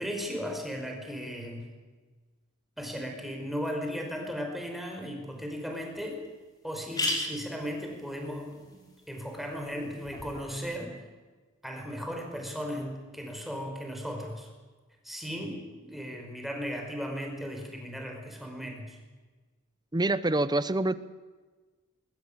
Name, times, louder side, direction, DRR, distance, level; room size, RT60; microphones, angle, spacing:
voice 1, 0.0-1.7 2.8-6.2 6.6-8.8 9.1-11.1 11.6-14.5 15.0-19.0, equal, ahead, 2 dB, 5.1 m, -36 dB
sound 1, 5.4-5.5 5.9-6.0 6.2-6.3 6.7-10.4, left 2 dB, 20° left, 5.4 m, -37 dB
voice 2, 19.9-20.9, right 2 dB, 20° right, 15 dB, 0.8 m, -26 dB
21.0 x 20.0 x 8.8 m, 1.3 s
head